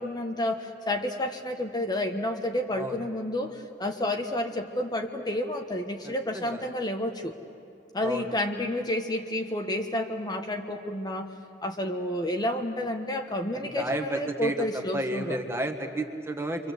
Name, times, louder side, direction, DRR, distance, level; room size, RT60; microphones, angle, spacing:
voice 1, 0.0-7.4 7.9-11.4 11.6-15.4, left 1 dB, 25° left, 3 dB, 1.1 m, -30 dB
voice 2, 6.0-6.6 8.0-8.2 13.8-14.7 14.9-16.7, right 1 dB, 15° right, 5 dB, 1.8 m, -32 dB
29.5 x 24.5 x 8.2 m, 2.7 s
head